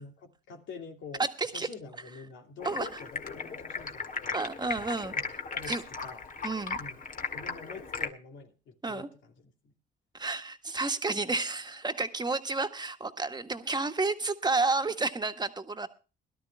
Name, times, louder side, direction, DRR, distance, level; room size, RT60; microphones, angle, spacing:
voice 1, 0.0-4.4 5.1-6.2 6.8-7.0 7.3-9.7, left 5 dB, 75° left, 2.7 m, -47 dB
voice 2, 1.2-1.7 2.6-3.0 4.3-5.1 5.7-5.8 6.4-6.8 8.8-9.1 10.1-15.9, right 3 dB, 20° right, 1.7 m, -31 dB
Stream, 2.6-8.1, left 4 dB, 40° left, 2.1 m, -37 dB
22.0 x 12.5 x 2.3 m
cardioid pair, 90°, 20 cm